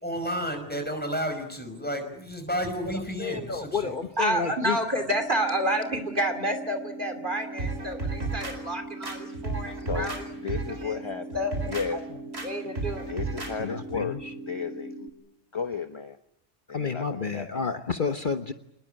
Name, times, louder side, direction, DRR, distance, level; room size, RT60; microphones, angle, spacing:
voice 1, 0.0-4.0, equal, 10° left, 5 dB, 5.4 m, -31 dB
voice 2, 2.9-4.8 13.6-14.3 16.7-18.5, left 5 dB, 45° left, 7 dB, 1.3 m, -30 dB
voice 3, 4.2-10.2 10.8-11.0 11.3-12.0 12.4-13.0, right 1 dB, 45° right, 7 dB, 3.0 m, -29 dB
sound 1, 5.1-15.1, right 2 dB, 80° left, 4.4 m, -40 dB
sound 2, 7.6-8.6 9.0-10.2 10.5-10.8 11.3-11.9 12.3-12.5 12.8-13.5 13.9-14.0, right 3 dB, 65° right, 4.8 m, -33 dB
voice 4, 9.9-12.0 12.7-12.8 13.1-14.2 14.5-15.1 15.5-16.2 16.7-17.7, left 5 dB, 25° left, 8 dB, 1.0 m, -34 dB
27.0 x 21.0 x 9.0 m, 0.79 s
omnidirectional pair, 1.2 m